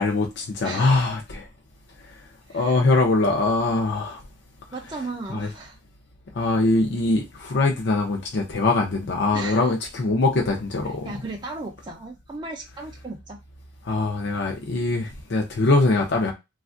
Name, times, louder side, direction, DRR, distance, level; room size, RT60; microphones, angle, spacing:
voice 1, 0.0-1.4 2.5-4.2 5.3-5.5 6.3-11.1 13.8-16.3, left 2 dB, 60° left, 0.6 m, -22 dB
voice 2, 0.6-1.0 2.5-2.7 4.7-5.8 9.3-9.7 11.1-13.4, right 3 dB, 25° right, 0.4 m, -35 dB
3.2 x 2.4 x 2.4 m
head